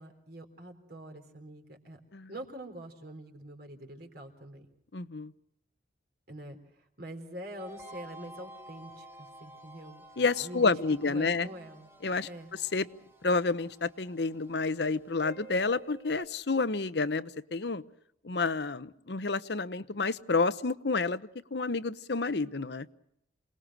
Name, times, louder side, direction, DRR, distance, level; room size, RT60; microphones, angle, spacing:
voice 1, 0.0-2.0 2.3-4.7 6.3-10.0 10.4-10.7 11.0-11.9 12.2-12.6, right 1 dB, 55° right, 5 dB, 3.8 m, -45 dB
voice 2, 4.9-5.3 10.2-11.5 12.0-12.3 12.7-12.9 13.2-17.8 18.2-22.9, left 4 dB, 60° left, 14 dB, 0.9 m, -29 dB
sound 1, 7.6-16.3, right 2 dB, 15° right, 1.6 m, -51 dB
28.0 x 19.5 x 6.1 m, 0.78 s
head